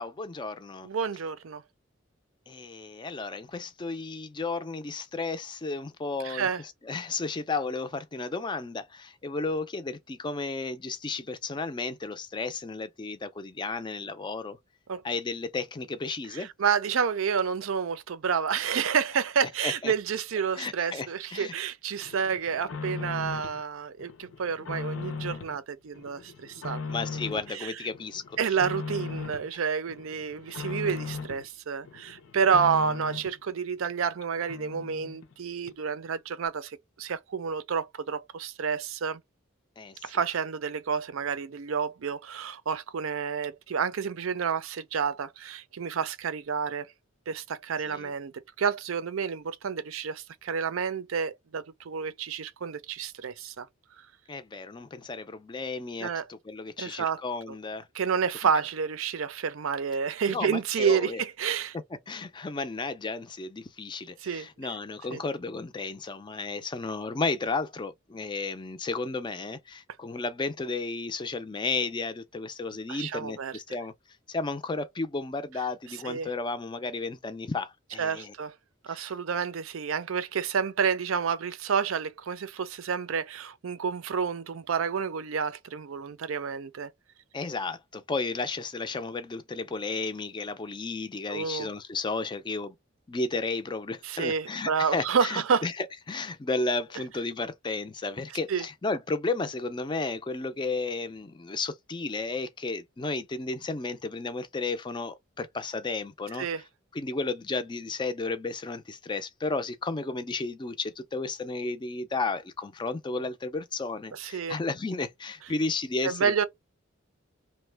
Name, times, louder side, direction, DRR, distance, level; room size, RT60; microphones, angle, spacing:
voice 1, 0.0-0.9 2.5-6.5 6.8-14.6 15.0-16.5 19.4-19.9 20.6-21.5 26.9-28.2 39.8-40.0 47.8-48.1 54.3-57.9 60.3-61.2 62.1-73.9 74.3-78.3 78.9-79.0 87.3-92.8 93.1-106.5 106.9-116.3, left 3 dB, 20° left, 0.4 m, -33 dB
voice 2, 0.8-1.6 6.2-6.6 14.9-15.0 16.3-26.8 27.3-27.8 28.4-39.2 40.0-46.9 47.3-48.3 48.6-53.7 56.0-56.2 56.8-57.2 57.9-61.8 64.2-64.7 65.1-65.2 72.9-73.5 75.9-76.3 78.0-78.5 78.8-86.9 91.3-91.7 94.0-95.7 98.5-98.6 106.4-106.6 114.1-114.6 116.0-116.4, right 6 dB, 75° right, 0.5 m, -29 dB
sound 1, 22.0-23.6 24.0-25.6 25.9-27.6 27.9-29.5 29.9-31.5 31.8-33.4 33.8-33.9 34.2-34.3 34.5-35.3 35.7-35.8, left 4 dB, 75° left, 0.6 m, -38 dB
3.0 x 2.1 x 3.3 m
head